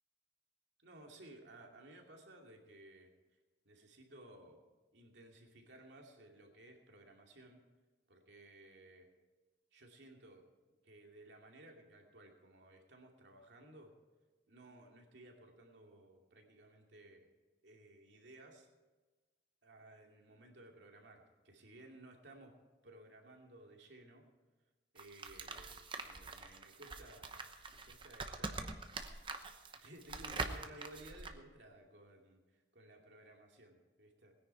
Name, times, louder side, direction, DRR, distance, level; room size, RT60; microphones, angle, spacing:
voice 1, 0.8-3.1 3.6-4.6 4.9-7.6 8.1-9.1 9.7-10.5 10.8-14.0 14.5-17.3 17.6-18.7 19.6-22.6 22.8-24.2 24.9-28.8 29.8-34.3, right 1 dB, 85° right, 1 dB, 2.5 m, -58 dB
sound 1, 25.0-31.3, right 3 dB, 25° right, 0.9 m, -44 dB
20.0 x 10.0 x 4.7 m, 1.2 s
head